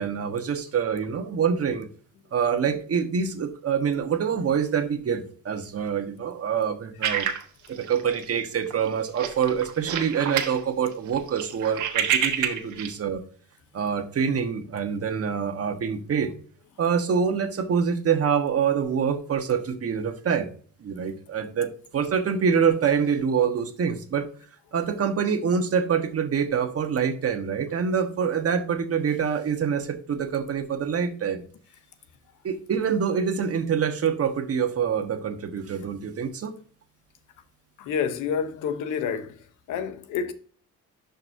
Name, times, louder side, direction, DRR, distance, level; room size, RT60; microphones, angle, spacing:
voice 1, 0.0-1.9 2.3-7.3 7.7-13.2 13.7-16.3 16.8-20.5 20.8-24.2 24.7-31.4 32.4-36.5, right 7 dB, 50° right, 1.4 m, -25 dB
Content warning, 7.0-8.4 8.7-8.9 9.2-10.6 10.9-12.9, right 8 dB, 80° right, 1.4 m, -27 dB
voice 2, 37.8-40.3, left 7 dB, 85° left, 1.0 m, -29 dB
11.0 x 5.4 x 2.7 m
cardioid pair, 90°, 30 cm